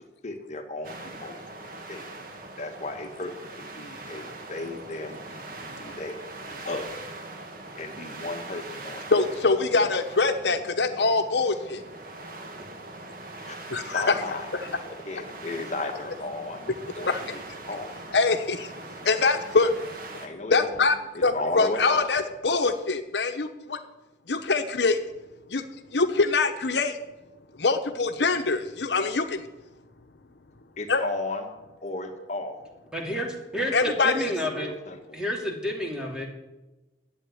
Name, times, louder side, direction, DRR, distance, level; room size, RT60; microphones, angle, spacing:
voice 1, 0.2-1.5 1.9-2.0 2.6-6.2 6.7-6.9 7.8-9.0 9.8-9.9 13.4-13.6 13.9-17.4 17.7-17.9 20.2-20.8 21.1-22.1 30.8-31.5 31.8-32.6 34.5-35.0, left 2 dB, 40° left, 4 dB, 1.7 m, -35 dB
sound 1, 0.8-20.3, right 2 dB, 55° right, 1.8 m, -42 dB
voice 2, 9.1-11.8 13.7-14.2 14.6-14.7 17.1-17.2 18.1-19.7 20.5-21.0 21.2-23.8 24.3-25.0 25.5-25.6 25.9-27.0 27.6-29.5 30.9-31.0 33.7-34.3, left 3 dB, 75° left, 7 dB, 1.0 m, -24 dB
voice 3, 32.9-34.7 35.1-36.3, equal, 5° right, -1 dB, 2.9 m, -30 dB
12.5 x 7.9 x 9.9 m, 1.1 s
head